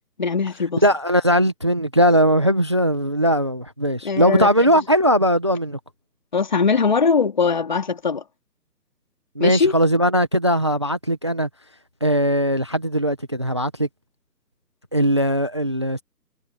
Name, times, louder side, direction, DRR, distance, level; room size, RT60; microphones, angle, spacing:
voice 1, 0.2-0.8 4.0-4.5 6.3-8.2 9.4-9.7, left 5 dB, 25° left, 3.1 m, -20 dB
voice 2, 0.8-5.8 9.3-11.5 12.0-13.9 14.9-16.0, equal, 15° right, 1.2 m, -19 dB
hypercardioid pair, 180°, 50 cm